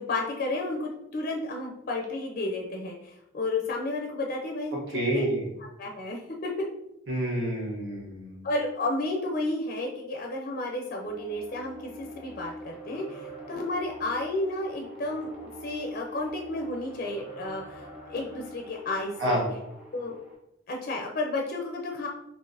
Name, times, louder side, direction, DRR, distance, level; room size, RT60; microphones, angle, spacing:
voice 1, 0.0-5.3 5.6-6.5 8.4-19.4 19.9-20.2 20.7-22.1, left 2 dB, 45° left, 1 dB, 0.4 m, -32 dB
voice 2, 4.9-5.4 7.1-8.4 19.2-19.4, equal, 60° right, -6 dB, 1.2 m, -28 dB
sound 1, 11.0-20.4, right 1 dB, 5° right, 0.7 m, -44 dB
3.8 x 2.9 x 2.6 m, 0.83 s
head